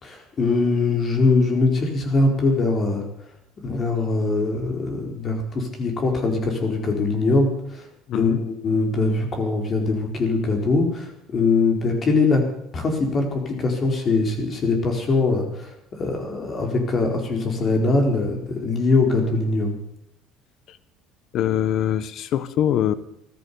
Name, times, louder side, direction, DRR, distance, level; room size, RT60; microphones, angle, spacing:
voice 1, 0.0-3.0 3.6-7.9 8.1-12.4 12.7-19.7, left 3 dB, 40° left, 3 dB, 4.5 m, -22 dB
voice 2, 8.1-8.4 20.7-20.8 21.3-22.9, left 10 dB, 60° left, 16 dB, 1.1 m, -23 dB
15.0 x 13.0 x 7.0 m, 0.77 s
supercardioid pair, 95°, 0 cm